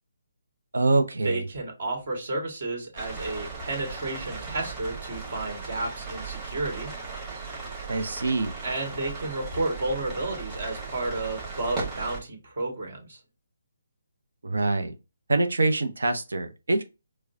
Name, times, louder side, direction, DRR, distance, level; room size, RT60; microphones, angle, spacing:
voice 1, 0.7-1.4 7.9-8.5 14.4-14.9 15.3-16.8, right 2 dB, 80° right, 0.7 m, -24 dB
voice 2, 1.2-6.9 8.6-13.2, right 2 dB, 55° right, 1.8 m, -32 dB
sound 1, 3.0-12.2, right 4 dB, 25° right, 1.7 m, -37 dB
4.7 x 2.2 x 2.7 m
figure-of-eight pair, 150°, 0 cm